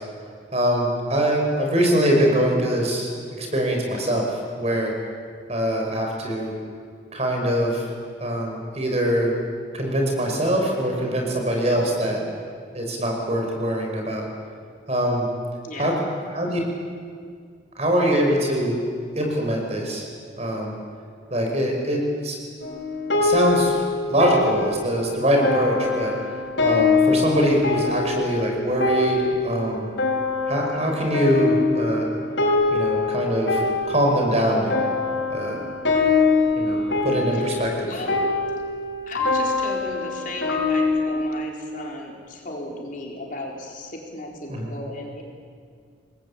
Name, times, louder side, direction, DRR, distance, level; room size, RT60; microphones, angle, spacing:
voice 1, 0.5-4.9 5.5-6.5 7.1-7.9 8.2-9.3 9.7-12.2 12.7-14.2 14.9-15.3 15.8-15.9 16.3-16.6 17.8-18.8 19.2-20.1 20.4-20.7 21.3-22.4 23.2-23.8 24.1-26.1 26.6-29.9 30.5-32.1 32.7-33.6 33.9-34.8 35.3-35.6 36.6-37.9 44.5-44.8, equal, 35° right, 1 dB, 5.5 m, -23 dB
voice 2, 11.7-12.0 15.6-15.9 37.3-38.2 39.1-45.2, left 1 dB, 45° left, -1 dB, 4.2 m, -36 dB
sound 1, 22.6-41.2, left 3 dB, 80° left, 5.2 m, -24 dB
28.0 x 20.5 x 8.8 m, 2.1 s
head